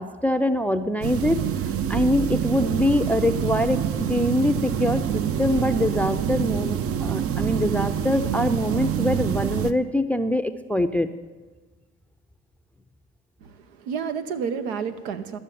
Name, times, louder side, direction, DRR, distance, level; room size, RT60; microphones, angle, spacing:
voice 1, 0.0-1.4 1.9-3.8 4.1-11.1, left 1 dB, 5° left, 10 dB, 0.5 m, -24 dB
sound 1, 1.0-9.7, right 9 dB, 45° right, 0.7 m, -26 dB
voice 2, 13.4-15.4, right 6 dB, 85° right, 9 dB, 1.0 m, -30 dB
12.5 x 6.8 x 8.5 m, 1.3 s
hypercardioid pair, 70°, 31 cm